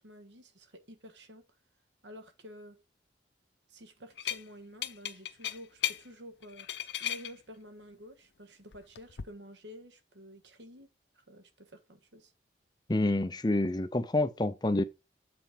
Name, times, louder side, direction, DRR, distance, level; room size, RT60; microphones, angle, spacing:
voice 1, 0.0-1.4 2.0-2.8 3.7-6.7 7.0-10.9 11.1-12.3, equal, 85° right, 1.5 m, -50 dB
sound 1, 4.2-4.4 4.8-6.0 6.4-7.3 8.7-9.2, left 11 dB, 75° left, 0.7 m, -35 dB
voice 2, 12.9-14.8, left 2 dB, 25° left, 0.6 m, -28 dB
7.9 x 4.2 x 5.1 m
head